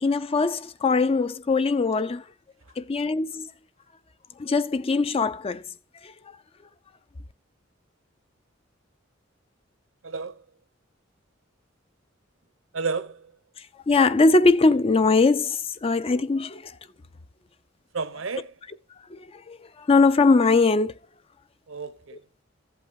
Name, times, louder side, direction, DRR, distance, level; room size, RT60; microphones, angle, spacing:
voice 1, 0.0-2.2 2.8-3.5 4.4-5.6 6.0-6.1 13.9-16.8 19.1-20.9, left 3 dB, 30° left, 0.4 m, -21 dB
voice 2, 10.0-10.4 12.7-13.3 17.9-18.5 21.7-22.2, right 4 dB, 85° right, 0.9 m, -31 dB
14.5 x 8.1 x 2.6 m
head